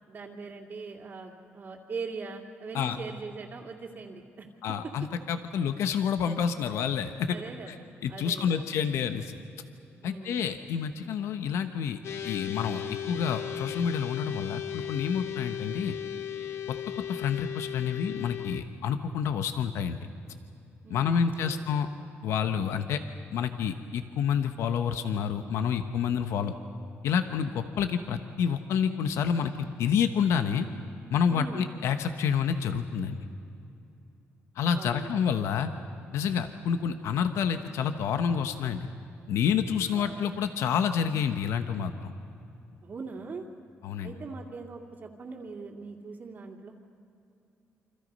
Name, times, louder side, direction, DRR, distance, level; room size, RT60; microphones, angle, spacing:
voice 1, 0.1-4.5 7.3-8.7 10.0-10.4 20.8-21.6 31.3-31.7 34.7-35.1 39.9-40.3 42.8-43.4 44.0-46.8, right 4 dB, 40° right, -4 dB, 2.4 m, -41 dB
voice 2, 4.6-7.3 7.7-7.8 8.0-9.4 10.0-12.0 12.2-15.9 16.7-16.8 17.1-20.0 20.9-21.9 22.2-23.0 23.3-26.5 27.0-30.7 31.1-33.2 34.6-35.7 36.1-38.9 39.3-42.1 43.8-44.1, left 7 dB, 85° left, 8 dB, 1.2 m, -28 dB
sound 1, 12.0-18.6, left 9 dB, 70° left, 1.5 m, -36 dB
28.5 x 26.0 x 5.5 m, 2.7 s
cardioid pair, 120°, 5 cm